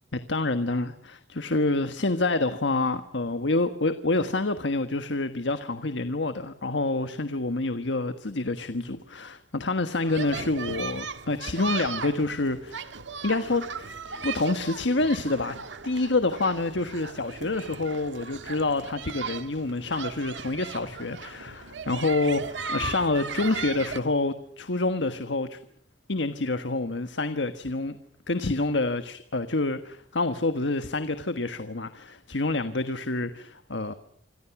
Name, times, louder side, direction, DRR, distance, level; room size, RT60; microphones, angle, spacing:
voice 1, 0.1-13.0 13.2-13.9 14.2-25.6 26.1-28.0 28.3-33.9, left 2 dB, 75° left, 10 dB, 1.5 m, -27 dB
sound 1, 10.0-24.0, right 5 dB, 80° right, 1.7 m, -37 dB
27.5 x 26.0 x 6.0 m, 0.62 s
head